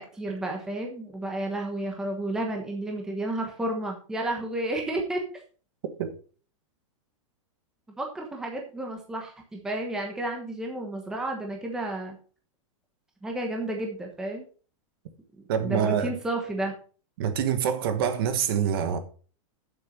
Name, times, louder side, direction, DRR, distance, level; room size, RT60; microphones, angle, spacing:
voice 1, 0.0-5.2 8.0-12.2 13.2-14.5 15.6-16.7, right 1 dB, 5° right, 1.1 m, -31 dB
voice 2, 15.5-16.1 17.2-19.0, right 8 dB, 45° right, 1.4 m, -25 dB
9.0 x 7.4 x 5.2 m
supercardioid pair, 180°, 17 cm